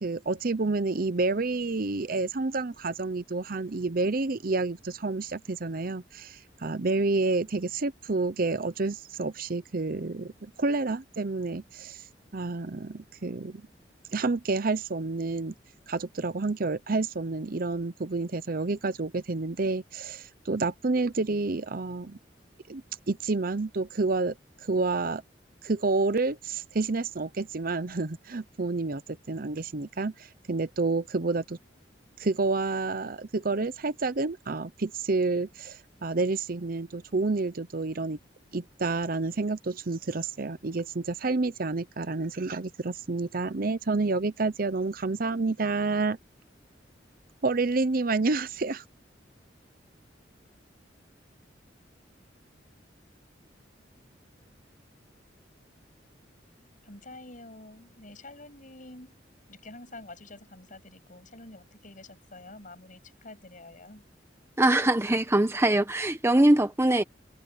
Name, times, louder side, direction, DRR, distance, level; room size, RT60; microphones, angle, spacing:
voice 1, 0.0-12.0 12.3-13.6 14.1-15.5 15.9-22.2 22.7-25.2 25.6-31.6 32.2-38.2 38.5-46.2 47.4-48.8, right 3 dB, 55° right, 0.8 m, -29 dB
voice 2, 56.8-59.1 59.5-64.0, left 2 dB, 45° left, 7.6 m, -47 dB
voice 3, 64.6-67.0, right 1 dB, 15° right, 1.1 m, -22 dB
head